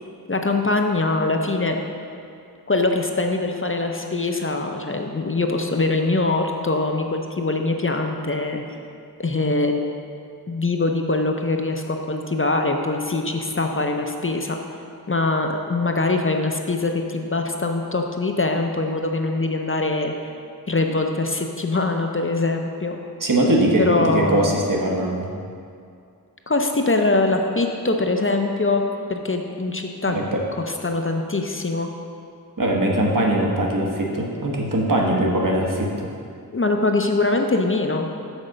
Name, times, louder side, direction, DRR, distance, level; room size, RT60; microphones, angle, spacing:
voice 1, 0.3-1.8 2.7-8.8 9.2-9.8 10.5-14.6 15.1-20.1 20.7-23.0 23.8-24.5 26.5-28.8 29.1-30.1 30.7-31.9 36.5-38.1, left 2 dB, 35° left, 3 dB, 0.6 m, -23 dB
voice 2, 23.2-25.3 30.1-30.4 32.6-36.1, right 1 dB, 55° right, -1 dB, 1.1 m, -21 dB
6.3 x 4.9 x 6.5 m, 2.4 s
wide cardioid pair, 50°, 38 cm